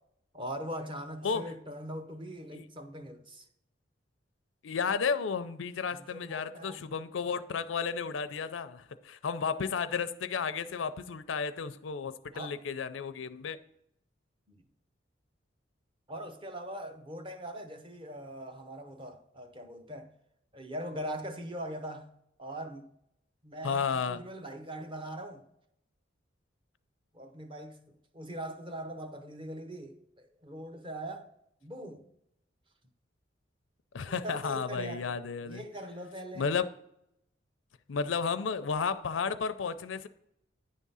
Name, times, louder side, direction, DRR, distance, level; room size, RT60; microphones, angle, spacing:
voice 1, 0.3-3.5 5.9-7.0 7.3-7.4 12.3-12.6 14.5-14.6 16.1-20.1 20.5-22.1 22.4-22.9 23.4-25.4 27.1-31.3 31.6-32.0 34.0-35.1 35.4-36.5, right 1 dB, 25° right, 0.7 m, -41 dB
voice 2, 4.6-13.6 23.6-24.2 33.9-35.6 36.4-36.7 37.9-40.1, left 5 dB, 90° left, 0.5 m, -33 dB
9.7 x 3.6 x 5.5 m
head